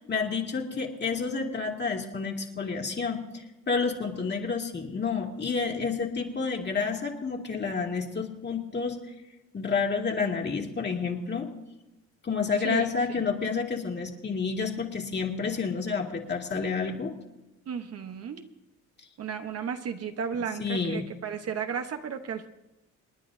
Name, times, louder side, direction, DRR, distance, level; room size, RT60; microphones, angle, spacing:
voice 1, 0.0-9.0 9.5-11.5 12.2-17.1 20.6-21.0, left 5 dB, 35° left, 1 dB, 2.3 m, -29 dB
voice 2, 12.6-13.2 17.7-18.5 19.2-22.5, right 7 dB, 55° right, 7 dB, 1.0 m, -34 dB
28.5 x 9.9 x 2.7 m, 0.98 s
cardioid pair, 90°, 30 cm